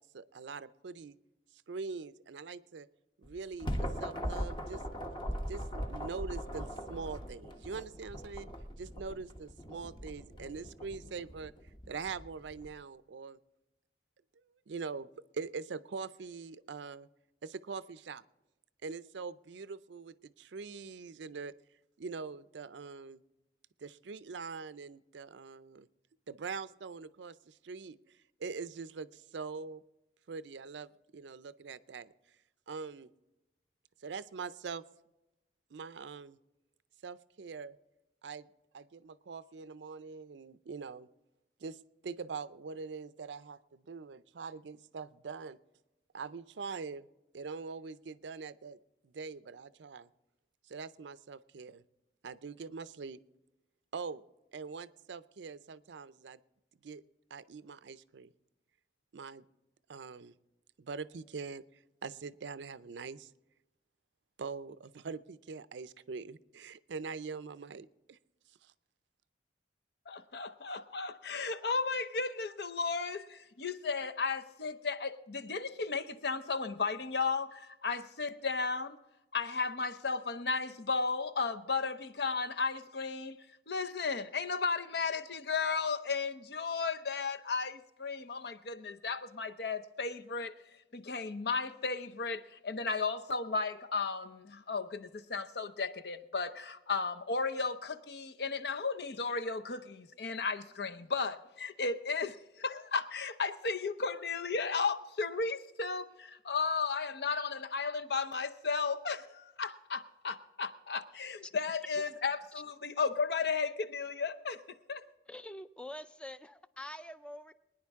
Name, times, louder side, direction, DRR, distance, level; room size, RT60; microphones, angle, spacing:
voice 1, 0.1-1.2 1.7-2.9 3.2-4.8 5.5-8.5 8.8-11.5 11.9-13.4 14.7-15.1 15.3-17.1 17.4-18.2 18.8-21.5 22.0-23.2 23.8-25.9 26.3-29.8 30.3-32.1 32.7-33.1 34.0-34.8 35.7-36.4 37.0-37.8 38.2-38.5 38.7-41.1 41.6-45.6 46.1-47.1 47.3-48.8 49.0-50.1 50.6-51.8 52.2-53.2 53.9-54.2 54.5-56.4 56.8-57.0 57.3-58.3 59.1-59.4 59.9-60.3 60.8-61.6 62.0-63.3 64.4-68.2 68.5-68.7, right 5 dB, 85° right, 0.5 m, -43 dB
sound 1, 3.2-12.7, equal, 25° left, 1.0 m, -40 dB
voice 2, 70.1-79.0 79.3-83.4 83.7-90.5 90.9-114.6 114.9-115.0, left 4 dB, 65° left, 0.7 m, -34 dB
voice 3, 115.3-117.5, left 1 dB, 5° left, 0.4 m, -45 dB
23.0 x 10.0 x 3.6 m
head